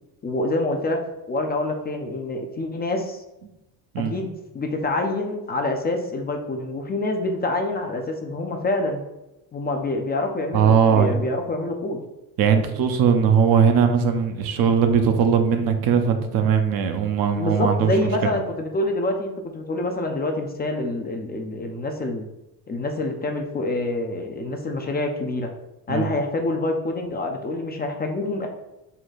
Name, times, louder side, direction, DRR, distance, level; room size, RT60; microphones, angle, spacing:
voice 1, 0.2-1.0 1.3-3.2 4.0-9.0 9.5-12.0 17.3-22.2 22.7-25.5 25.9-28.5, left 2 dB, 20° left, 3 dB, 0.5 m, -26 dB
voice 2, 10.5-11.2 12.4-17.9 18.2-18.3 25.9-26.1, right 7 dB, 50° right, 6 dB, 0.6 m, -19 dB
4.0 x 2.2 x 4.1 m, 0.95 s
hypercardioid pair, 70°, 44 cm